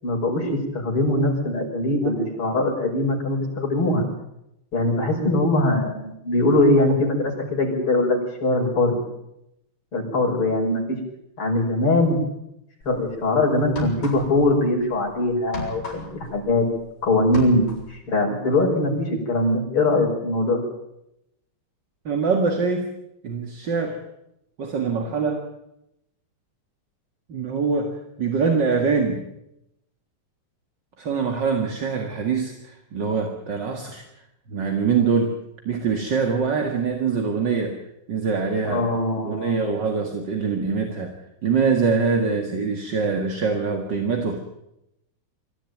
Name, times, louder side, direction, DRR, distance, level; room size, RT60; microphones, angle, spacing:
voice 1, 0.0-4.0 4.7-9.0 9.9-11.0 11.4-12.2 12.8-16.7 17.0-20.7 38.6-39.7 42.2-42.3, left 2 dB, 90° left, 0 dB, 6.5 m, -22 dB
sound 1, 12.8-13.0 13.6-14.5 14.8-16.9 17.2-18.0, left 2 dB, 50° left, 7.9 m, -35 dB
voice 2, 22.1-22.9 23.2-24.0 24.6-25.5 27.3-29.3 31.0-34.0 34.5-35.4 35.7-37.8 38.1-38.8 39.2-41.2 41.4-44.4, right 5 dB, 55° right, 4 dB, 2.6 m, -24 dB
24.5 x 14.5 x 9.2 m, 0.84 s
omnidirectional pair, 2.4 m